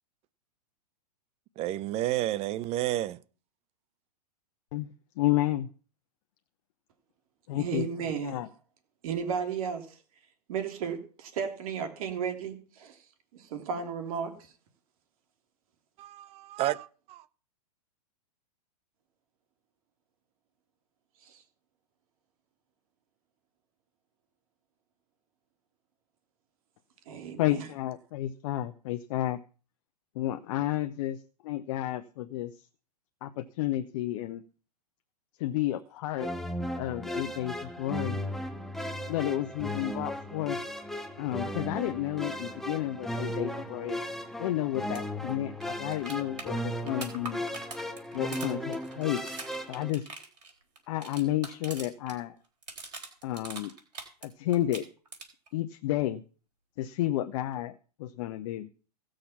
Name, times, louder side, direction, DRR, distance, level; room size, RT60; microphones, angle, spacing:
voice 1, 1.6-3.2 16.0-17.2, right 14 dB, 30° right, 0.6 m, -31 dB
voice 2, 4.7-5.7 7.5-8.5 27.4-29.4 30.1-32.7 33.2-34.4 35.4-36.3 36.8-38.2 39.1-40.6 41.2-44.0 44.4-47.4 48.1-49.2 49.7-50.1 50.9-52.3 53.2-53.7 54.2-54.8 55.5-56.2 56.8-58.7, left 14 dB, 50° left, 0.8 m, -31 dB
voice 3, 7.5-8.4 9.0-10.0 10.5-13.1 13.3-14.5 21.2-21.4 27.1-27.7, right 7 dB, 60° right, 3.1 m, -34 dB
sound 1, 36.2-49.9, equal, ahead, 1.0 m, -36 dB
sound 2, 44.9-45.0 45.3-45.4 45.6-52.2 52.4-54.3 54.5-55.5 57.5-57.6, right 3 dB, 90° right, 3.9 m, -43 dB
16.5 x 6.5 x 5.8 m
hypercardioid pair, 120°, 21 cm